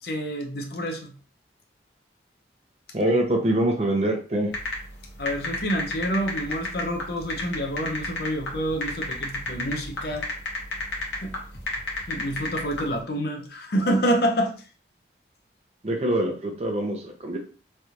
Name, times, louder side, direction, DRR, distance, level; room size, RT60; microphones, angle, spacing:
voice 1, 0.0-1.1 3.1-3.2 5.2-10.3 11.1-11.3 12.1-14.5, equal, 60° left, 3 dB, 0.6 m, -27 dB
voice 2, 2.9-4.5 15.8-17.4, right 1 dB, 35° right, 3 dB, 0.6 m, -24 dB
sound 1, 4.5-12.9, left 2 dB, 85° left, 1.2 m, -31 dB
3.3 x 2.4 x 2.8 m, 0.39 s
head